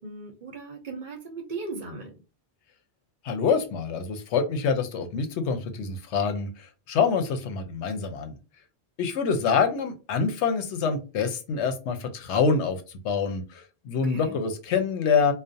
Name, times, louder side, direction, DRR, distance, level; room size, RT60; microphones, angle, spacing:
voice 1, 0.0-2.2 14.0-14.5, right 3 dB, 55° right, 2 dB, 0.7 m, -38 dB
voice 2, 3.2-6.5 6.9-8.4 9.0-12.8 13.0-15.3, left 5 dB, 85° left, 8 dB, 0.9 m, -26 dB
2.4 x 2.0 x 2.5 m, 0.31 s
omnidirectional pair, 1.1 m